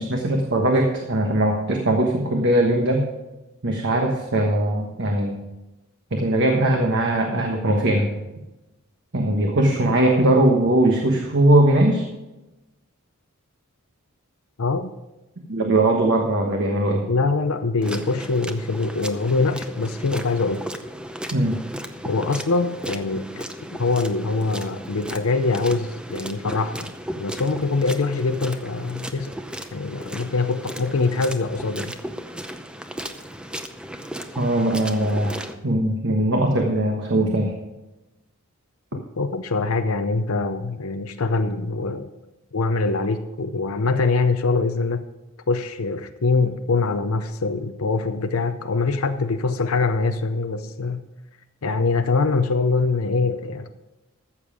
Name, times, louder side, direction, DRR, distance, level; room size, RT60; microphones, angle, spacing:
voice 1, 0.0-3.0 3.6-5.4 6.1-8.1 9.1-12.0 15.5-17.0 21.3-21.6 34.4-35.4 35.6-37.5, right 1 dB, 60° right, 2 dB, 1.3 m, -20 dB
voice 2, 14.6-14.9 17.1-20.6 22.0-23.5 23.8-29.3 29.7-31.9 38.9-42.1 42.5-45.1 45.5-51.0 51.6-53.7, left 3 dB, 85° left, 7 dB, 0.7 m, -23 dB
sound 1, 17.8-35.5, equal, 5° right, 0.7 m, -35 dB
14.0 x 7.2 x 5.0 m, 1.0 s
head